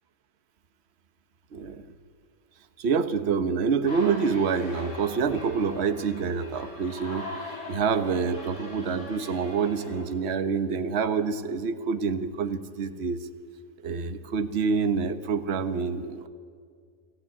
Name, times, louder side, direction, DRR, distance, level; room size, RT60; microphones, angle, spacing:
voice 1, 1.5-1.8 2.8-7.3 7.7-13.3 13.8-16.3, right 5 dB, 45° right, 10 dB, 1.1 m, -27 dB
sound 1, 3.8-10.0, left 1 dB, 85° left, 5.8 m, -41 dB
26.0 x 14.0 x 8.5 m, 2.1 s
omnidirectional pair, 1.8 m